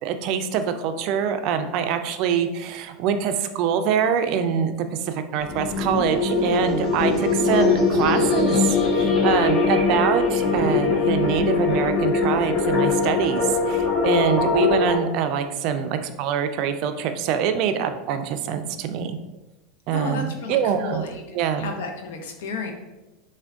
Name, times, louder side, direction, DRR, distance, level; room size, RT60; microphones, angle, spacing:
voice 1, 0.0-19.2 19.9-21.1 21.3-21.7, right 8 dB, 55° right, 8 dB, 0.3 m, -24 dB
sound 1, 5.4-15.0, left 3 dB, 35° left, 1.0 m, -21 dB
voice 2, 19.9-21.2 21.6-22.7, left 4 dB, 80° left, 3 dB, 0.6 m, -32 dB
3.5 x 2.2 x 3.4 m, 1.0 s
supercardioid pair, 120°, 0 cm